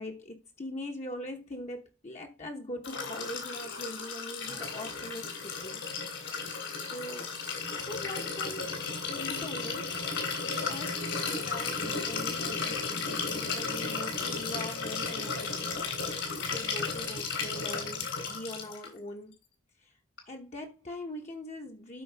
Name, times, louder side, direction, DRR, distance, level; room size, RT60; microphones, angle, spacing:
voice 1, 0.0-5.8 6.9-7.3 7.7-8.7 9.1-19.3 20.3-22.0, left 1 dB, 35° left, 1.0 m, -42 dB
Liquid, 2.8-18.9 20.2-20.3, left 4 dB, 65° left, 3.2 m, -34 dB
12.5 x 4.6 x 3.4 m
head